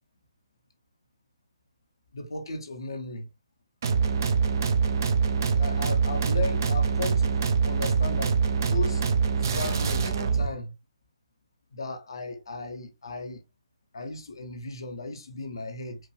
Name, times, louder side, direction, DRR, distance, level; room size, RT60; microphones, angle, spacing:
voice 1, 2.1-3.3 5.4-9.0 9.4-10.7 11.7-13.4 13.9-16.0, left 3 dB, 55° left, 0.9 m, -36 dB
sound 1, 3.8-10.5, right 5 dB, 35° right, 0.7 m, -24 dB
4.6 x 2.5 x 3.3 m
figure-of-eight pair, 140°, 3 cm